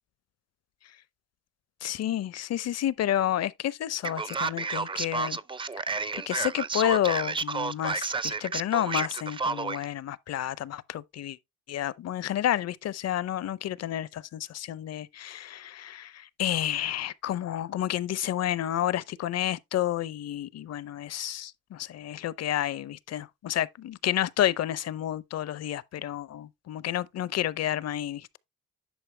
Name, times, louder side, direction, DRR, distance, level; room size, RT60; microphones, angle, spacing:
voice 1, 1.8-5.4 6.3-11.4 11.7-28.4, left 12 dB, 55° left, 0.6 m, -30 dB
Male speech man speaking, 4.0-9.8, right 4 dB, 15° right, 0.4 m, -31 dB
10.5 x 4.7 x 3.2 m
cardioid pair, 90°, 30 cm